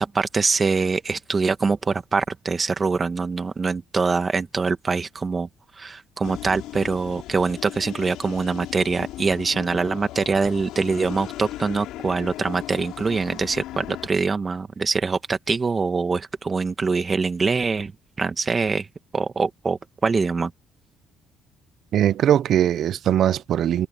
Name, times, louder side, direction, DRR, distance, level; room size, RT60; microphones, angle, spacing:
voice 1, 0.0-5.5 5.8-17.9 18.2-18.9 19.1-20.5, right 4 dB, 30° right, 1.6 m, -24 dB
sound 1, 6.2-14.1, left 15 dB, 85° left, 5.2 m, -37 dB
voice 2, 21.9-23.9, right 10 dB, 65° right, 0.6 m, -20 dB
cardioid pair, 90°, 0 cm